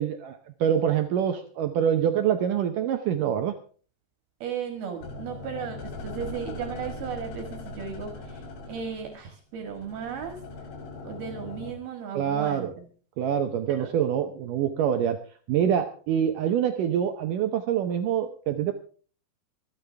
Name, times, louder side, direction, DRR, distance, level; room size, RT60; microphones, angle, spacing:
voice 1, 0.0-3.5 12.1-12.7 13.2-15.2 15.5-18.7, right 9 dB, 80° right, 6 dB, 1.9 m, -25 dB
voice 2, 4.4-10.3 11.0-12.9 13.7-13.9, right 7 dB, 65° right, 5 dB, 3.5 m, -36 dB
sound 1, 5.0-11.7, left 3 dB, 85° left, 5.5 m, -40 dB
26.0 x 9.9 x 3.4 m, 0.42 s
omnidirectional pair, 5.0 m